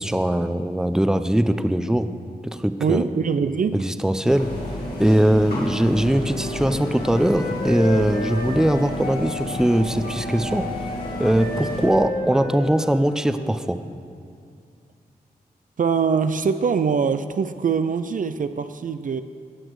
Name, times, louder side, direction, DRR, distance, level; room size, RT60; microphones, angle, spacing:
voice 1, 0.0-2.1 2.4-3.1 3.7-4.5 5.0-10.7 11.2-13.8, right 1 dB, 5° right, 10 dB, 0.6 m, -21 dB
voice 2, 2.8-3.8 15.8-19.2, right 6 dB, 55° right, 10 dB, 0.5 m, -23 dB
sound 1, 4.2-11.9, left 1 dB, 75° left, 2.8 m, -32 dB
Wind instrument woodwind instrument, 6.2-13.6, left 1 dB, 60° left, 2.0 m, -32 dB
18.0 x 6.1 x 4.8 m, 2.4 s
cardioid pair, 45°, 16 cm